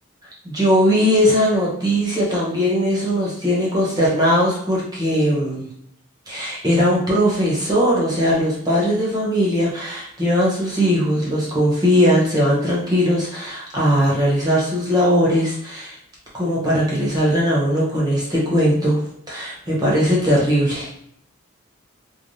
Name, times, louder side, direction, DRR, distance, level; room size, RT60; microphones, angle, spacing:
voice 1, 0.4-5.7 6.3-16.0 16.3-20.9, equal, 20° right, -6 dB, 0.8 m, -19 dB
3.3 x 2.1 x 2.6 m, 0.74 s
head